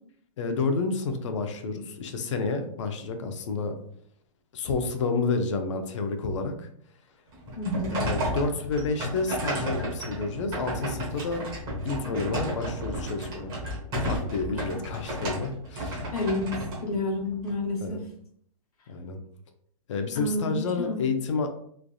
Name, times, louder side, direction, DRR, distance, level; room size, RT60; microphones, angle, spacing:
voice 1, 0.4-3.7 4.5-6.7 7.9-11.5 11.8-13.5 13.9-16.1 17.8-18.0 18.9-19.2 19.9-21.5, left 4 dB, 55° left, 6 dB, 0.5 m, -30 dB
sound 1, 7.3-17.5, equal, 25° right, 1.1 m, -33 dB
voice 2, 7.6-8.0 16.1-16.5 16.8-18.0 20.1-21.0, left 2 dB, 85° left, -1 dB, 1.2 m, -29 dB
3.2 x 2.5 x 2.3 m, 0.64 s
hypercardioid pair, 165°, 19 cm